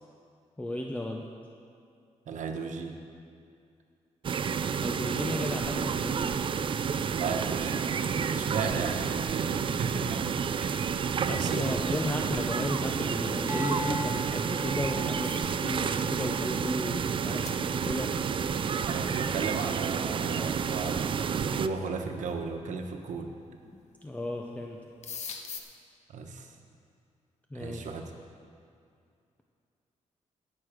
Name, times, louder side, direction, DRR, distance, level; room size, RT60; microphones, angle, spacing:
voice 1, 0.6-1.3 4.8-6.4 11.3-18.1 23.6-24.8 27.5-27.9, left 1 dB, 10° left, 1 dB, 0.6 m, -34 dB
voice 2, 2.3-3.0 7.1-10.9 11.2-11.9 18.9-23.3 26.1-26.5 27.5-28.1, right 4 dB, 80° right, 4 dB, 1.1 m, -35 dB
sound 1, 4.2-21.7, right 6 dB, 45° right, 0.4 m, -30 dB
sound 2, 13.5-17.9 18.5-18.9, left 1 dB, 20° right, 1.3 m, -41 dB
sound 3, 14.2-15.7 16.0-16.3 16.9-17.0 17.4-17.6 19.9-20.0 21.0-21.1 21.8-22.2 23.5-23.9 24.2-24.4 24.7-25.6, left 6 dB, 65° left, 1.0 m, -44 dB
16.5 x 6.5 x 5.0 m, 2.4 s
wide cardioid pair, 125°, 12 cm